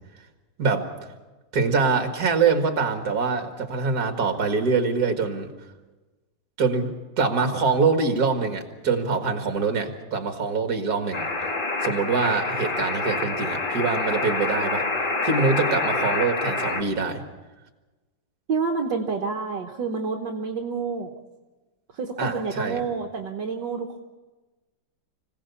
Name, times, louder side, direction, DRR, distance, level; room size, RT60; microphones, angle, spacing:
voice 1, 1.5-5.5 6.6-11.3 11.8-14.8 15.2-17.2 22.2-22.8, right 4 dB, 55° right, 5 dB, 2.3 m, -24 dB
sound 1, 11.1-16.8, left 3 dB, 30° left, 1.3 m, -27 dB
voice 2, 18.5-21.1 21.9-24.0, right 5 dB, 75° right, 3 dB, 1.8 m, -28 dB
25.0 x 17.0 x 7.0 m, 1.2 s
omnidirectional pair, 2.0 m